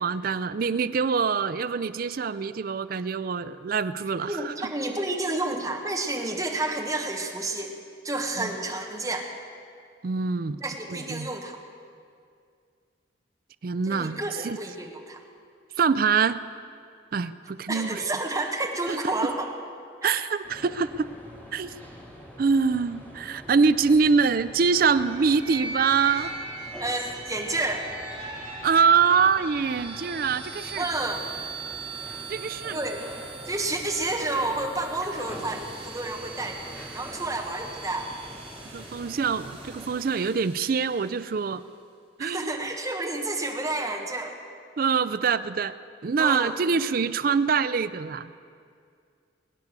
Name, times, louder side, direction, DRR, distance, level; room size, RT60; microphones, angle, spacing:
voice 1, 0.0-4.5 8.4-8.5 10.0-10.6 10.9-11.3 13.6-14.2 14.4-14.6 15.8-16.4 17.1-18.0 18.9-19.0 20.0-21.1 21.5-21.8 22.4-26.3 28.6-30.8 32.3-32.8 38.7-41.6 42.2-42.7 44.8-45.7 46.0-48.3, right 5 dB, 50° right, 14 dB, 0.4 m, -24 dB
voice 2, 4.2-7.7 8.0-9.3 10.6-11.6 13.8-15.2 17.7-19.5 20.0-20.1 26.8-27.9 30.8-31.3 32.7-33.1 33.5-38.1 42.2-44.4 46.2-46.7, right 2 dB, 20° right, 1 dB, 1.4 m, -30 dB
sound 1, 20.4-40.0, equal, 10° left, 2.2 m, -45 dB
sound 2, 24.6-41.4, right 4 dB, 35° right, 2.4 m, -41 dB
21.5 x 9.5 x 6.7 m, 2.3 s
head